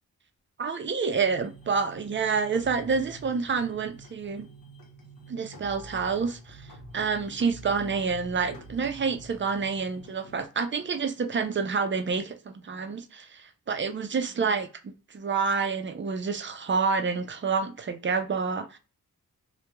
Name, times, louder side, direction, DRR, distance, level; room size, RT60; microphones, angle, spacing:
voice 1, 0.6-4.5 5.3-14.7 15.1-18.8, right 5 dB, 35° right, 0.4 m, -28 dB
sound 1, 1.1-10.5, right 1 dB, 70° left, 0.8 m, -47 dB
2.9 x 2.2 x 2.2 m
cardioid pair, 75°, 36 cm